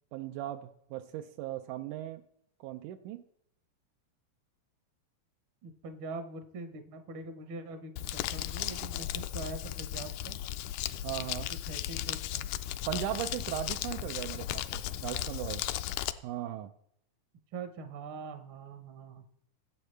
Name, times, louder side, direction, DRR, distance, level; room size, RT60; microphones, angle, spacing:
voice 1, 0.1-2.2 2.6-3.2 11.0-11.5 12.9-15.7 16.2-16.7, right 12 dB, 85° right, 6 dB, 2.0 m, -38 dB
voice 2, 5.6-10.4 11.7-12.5 17.5-19.2, right 3 dB, 60° right, 6 dB, 1.4 m, -43 dB
Crumpling crinkling, 8.0-16.1, left 13 dB, 80° left, 2.0 m, -36 dB
21.5 x 8.2 x 3.2 m, 0.74 s
omnidirectional pair, 3.5 m